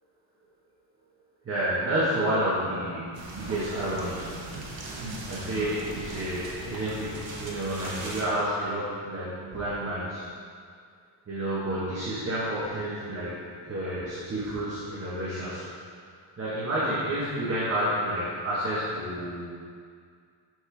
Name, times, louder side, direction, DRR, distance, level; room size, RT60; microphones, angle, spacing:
voice 1, 1.4-3.1 3.3-4.5 5.3-10.2 11.3-13.4 13.6-15.7 16.4-19.5, right 1 dB, 30° right, -10 dB, 1.3 m, -30 dB
sound 1, 3.1-8.2, right 2 dB, 80° right, 1.2 m, -39 dB
7.5 x 5.4 x 3.4 m, 2.1 s
cardioid pair, 155°, 45 cm